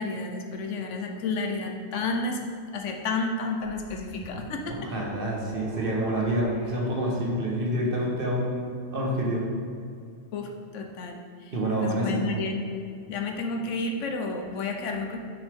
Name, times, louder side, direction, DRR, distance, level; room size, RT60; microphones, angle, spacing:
voice 1, 0.0-2.4 2.7-4.9 10.3-11.5 11.8-12.6 13.1-15.2, left 3 dB, 70° left, 3 dB, 0.9 m, -31 dB
sound 1, 3.6-7.6, right 1 dB, 25° right, 1.5 m, -45 dB
voice 2, 4.7-9.4 11.5-12.3, right 1 dB, 45° right, -2 dB, 1.1 m, -27 dB
6.2 x 5.2 x 3.4 m, 2.4 s
omnidirectional pair, 1.4 m